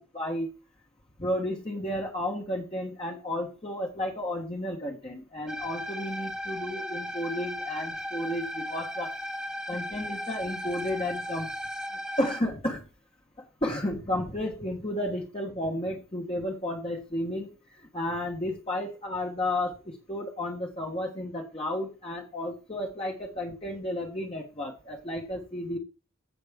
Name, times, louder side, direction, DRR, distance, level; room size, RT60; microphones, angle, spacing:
voice 1, 0.1-0.5 1.2-9.1 9.7-11.5 12.2-12.8 13.4-17.5 17.7-25.8, left 1 dB, 25° left, -1 dB, 1.2 m, -32 dB
sound 1, 5.5-12.4, equal, 5° right, 0.6 m, -36 dB
15.0 x 6.0 x 3.6 m, 0.34 s
head